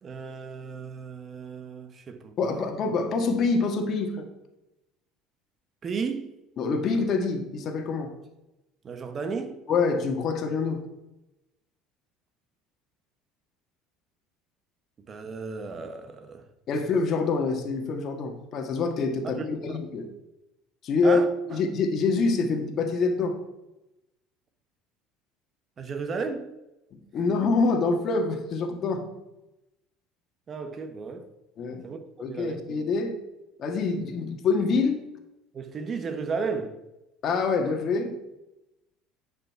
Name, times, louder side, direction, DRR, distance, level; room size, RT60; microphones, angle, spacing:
voice 1, 0.0-2.7 5.8-6.3 8.8-9.6 15.1-16.4 19.2-19.8 21.0-21.6 25.8-26.5 30.5-31.3 31.7-32.0 32.3-32.6 35.5-36.8, right 5 dB, 35° right, 1.3 m, -34 dB
voice 2, 2.4-4.3 6.6-8.1 9.7-10.8 16.7-20.1 20.8-21.2 21.5-23.4 27.1-29.1 31.6-31.8 32.2-33.1 33.6-35.1 37.2-38.2, left 4 dB, 50° left, 1.6 m, -26 dB
9.4 x 5.4 x 4.6 m
supercardioid pair, 95°, 0 cm